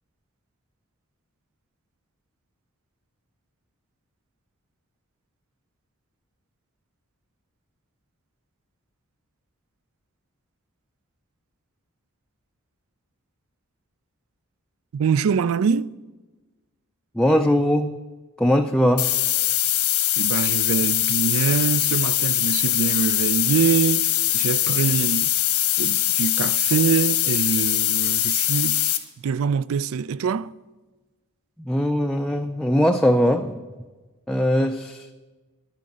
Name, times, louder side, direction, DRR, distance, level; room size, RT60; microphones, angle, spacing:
voice 1, 14.9-15.9 20.2-25.3 25.8-28.9 29.2-30.5, right 6 dB, 65° right, 0.4 m, -24 dB
voice 2, 17.1-18.0 18.4-19.1 31.6-33.6 34.3-35.1, equal, 5° left, 0.3 m, -20 dB
sound 1, 19.0-29.0, left 13 dB, 85° left, 1.2 m, -22 dB
11.0 x 9.2 x 7.5 m
head